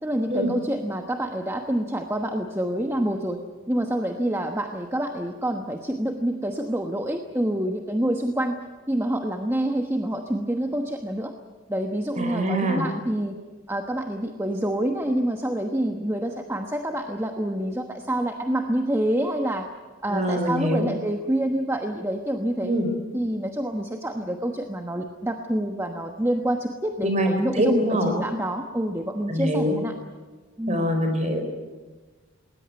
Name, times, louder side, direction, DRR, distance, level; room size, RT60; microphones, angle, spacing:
voice 1, 0.0-3.4 3.7-11.3 11.7-13.4 13.7-19.7 20.0-22.7 23.1-29.9 30.6-30.8, right 1 dB, 10° right, 4 dB, 1.1 m, -27 dB
voice 2, 12.2-12.9 20.1-20.9 22.6-22.9 27.0-27.3 27.5-28.1 29.3-29.8 30.7-31.4, equal, 35° right, 5 dB, 4.6 m, -24 dB
20.0 x 19.5 x 9.5 m, 1.3 s
head